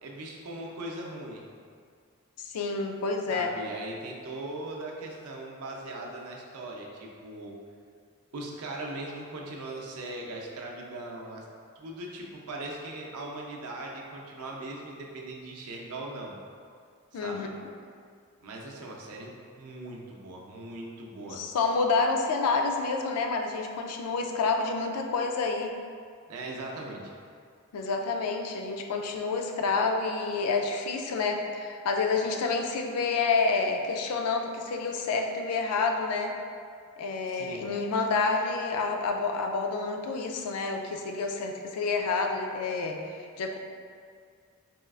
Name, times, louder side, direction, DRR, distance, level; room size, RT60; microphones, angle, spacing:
voice 1, 0.0-1.4 3.3-7.5 8.3-11.5 11.8-16.3 17.1-17.5 18.4-21.4 26.3-27.1 37.3-37.6, right 2 dB, 85° right, -1 dB, 0.5 m, -39 dB
voice 2, 2.4-3.5 17.1-17.5 21.4-25.8 27.7-36.4 37.0-43.6, left 4 dB, 85° left, 3 dB, 0.4 m, -28 dB
4.2 x 2.3 x 2.3 m, 2.2 s
head